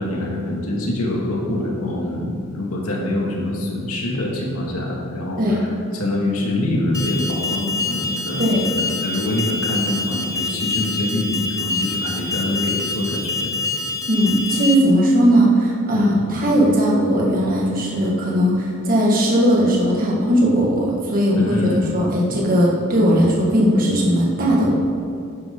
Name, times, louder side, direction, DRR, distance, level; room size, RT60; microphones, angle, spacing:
voice 1, 0.0-5.7 5.9-13.6 15.9-16.3 21.3-22.0, left 1 dB, 80° left, -2 dB, 2.3 m, -25 dB
Alarm, 6.9-14.7, left 3 dB, 15° left, 0.5 m, -26 dB
voice 2, 14.1-21.6 21.9-24.7, equal, 40° right, -4 dB, 1.8 m, -18 dB
11.0 x 10.5 x 3.9 m, 2.4 s
head